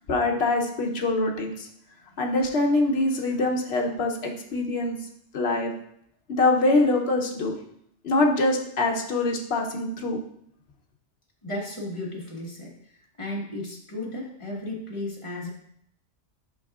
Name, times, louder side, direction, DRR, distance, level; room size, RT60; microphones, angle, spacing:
voice 1, 0.1-1.7 2.2-5.0 5.3-5.7 6.3-7.5 8.0-10.2, left 2 dB, 60° left, 1 dB, 1.1 m, -24 dB
voice 2, 11.4-12.7 13.2-15.5, left 1 dB, 25° left, -3 dB, 1.3 m, -34 dB
8.2 x 5.3 x 2.4 m, 0.70 s
omnidirectional pair, 1.2 m